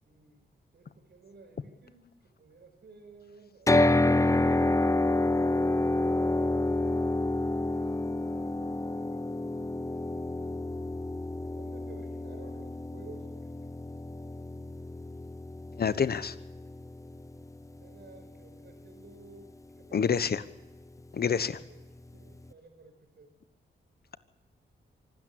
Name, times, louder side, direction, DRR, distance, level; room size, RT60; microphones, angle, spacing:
voice 1, 0.0-0.5 0.7-4.9 8.0-9.8 11.4-13.7 17.8-20.2 21.4-21.8 22.1-23.3, right 3 dB, 65° right, 5 dB, 5.3 m, -54 dB
sound 1, 3.7-17.8, left 2 dB, 15° left, 0.8 m, -29 dB
voice 2, 15.8-16.3 19.9-20.4 21.1-21.6, left 6 dB, 55° left, 14 dB, 1.1 m, -27 dB
24.5 x 13.0 x 8.7 m, 1.1 s
cardioid pair, 70°, 19 cm